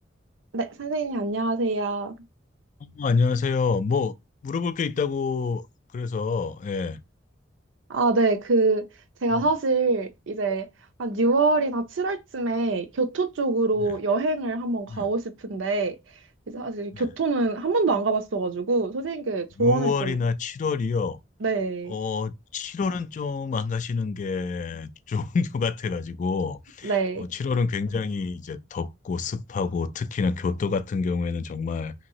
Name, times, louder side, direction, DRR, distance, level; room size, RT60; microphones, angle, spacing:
voice 1, 0.5-2.1 7.9-8.9 9.2-10.7 11.0-16.0 16.5-20.2 21.4-22.0 26.8-27.3, right 3 dB, 80° right, 0.6 m, -25 dB
voice 2, 2.8-4.1 4.4-5.6 5.9-7.0 9.3-9.5 14.9-15.1 16.9-17.1 19.6-21.2 21.9-31.9, left 4 dB, 40° left, 0.3 m, -27 dB
2.9 x 2.6 x 2.7 m
head